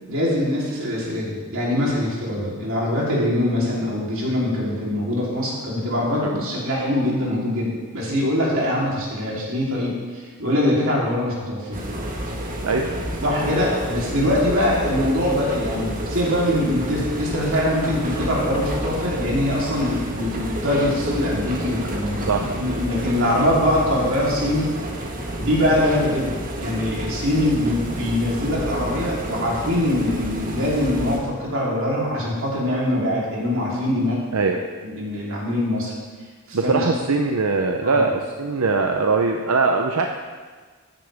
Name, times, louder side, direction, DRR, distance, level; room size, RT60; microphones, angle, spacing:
voice 1, 0.1-11.8 13.2-24.7 25.4-26.3 26.6-34.2 34.8-35.9 36.5-36.8 37.8-38.0, left 1 dB, 65° right, -5 dB, 3.5 m, -23 dB
sound 1, 11.7-31.2, right 1 dB, 40° right, 1.5 m, -30 dB
voice 2, 34.3-34.6 36.5-40.1, right 4 dB, 90° right, 3 dB, 0.7 m, -21 dB
14.5 x 10.0 x 3.5 m, 1.5 s
head